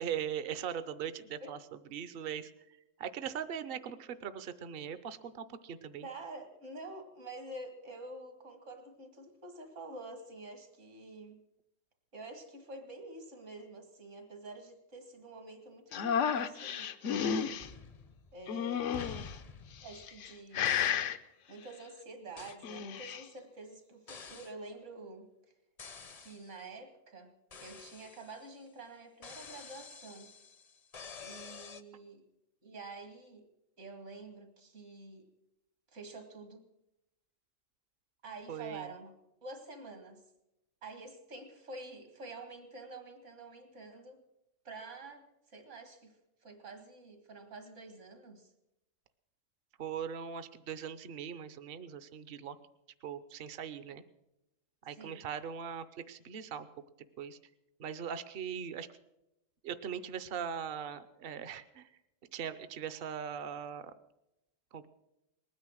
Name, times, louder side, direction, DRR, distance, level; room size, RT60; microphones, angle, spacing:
voice 1, 0.0-6.1 38.5-38.9 49.8-52.6 53.0-54.0 54.8-56.7 57.2-57.4 57.8-59.0 59.6-62.0 62.3-63.9 64.7-64.9, right 8 dB, 50° right, 13 dB, 0.9 m, -40 dB
voice 2, 6.0-11.4 12.1-17.7 18.3-19.1 19.8-21.0 21.5-25.3 26.2-27.3 27.6-30.3 31.2-32.2 32.6-33.4 33.8-35.3 35.9-36.6 38.2-39.1 39.4-40.2 40.8-44.2 44.6-46.2 46.4-48.5 54.9-55.2, right 2 dB, 70° right, 6 dB, 2.3 m, -48 dB
sound 1, 15.9-17.7 18.5-19.3 20.0-20.3 20.5-21.2 22.5-23.2, left 8 dB, 75° left, 1.0 m, -32 dB
sound 2, 17.6-18.5 18.9-20.3 20.6-21.1 22.4-22.7 24.1-24.6 25.8-26.6 27.5-28.6 29.2-31.8, left 5 dB, 40° left, 0.7 m, -49 dB
20.0 x 9.7 x 6.3 m, 0.90 s
omnidirectional pair, 1.3 m